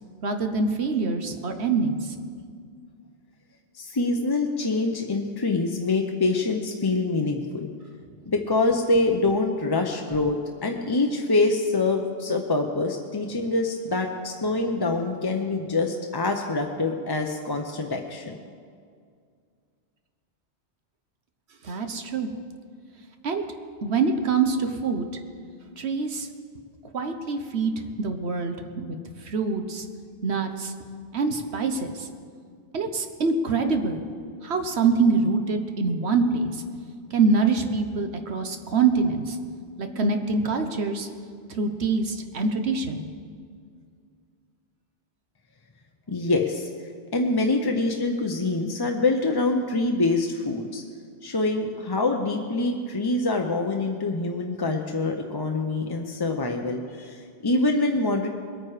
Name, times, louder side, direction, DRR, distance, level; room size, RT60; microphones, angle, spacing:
voice 1, 0.2-2.2 21.6-22.3 23.2-23.4 23.8-25.1 25.8-26.3 26.9-29.0 29.2-29.9 30.2-30.7 31.1-32.1 32.7-34.0 34.4-36.6 37.1-39.4 39.8-41.1 41.5-43.0, right 4 dB, 70° right, 6 dB, 1.2 m, -25 dB
voice 2, 3.7-7.7 8.3-18.4 46.1-46.7 47.1-50.8 51.2-58.3, left 2 dB, 25° left, 3 dB, 0.6 m, -25 dB
21.5 x 9.0 x 4.9 m, 2.2 s
omnidirectional pair, 1.2 m